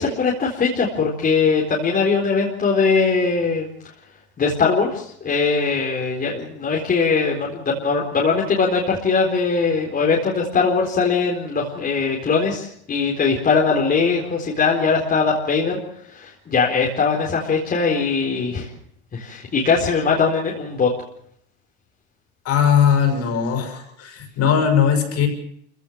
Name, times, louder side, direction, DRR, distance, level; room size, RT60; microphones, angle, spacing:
voice 1, 0.0-3.7 4.4-15.8 16.1-18.7 19.1-20.9, left 5 dB, 25° left, -2 dB, 4.2 m, -21 dB
voice 2, 22.4-25.3, left 8 dB, 45° left, 5 dB, 6.3 m, -19 dB
27.5 x 16.5 x 6.4 m, 0.68 s
supercardioid pair, 115°, 34 cm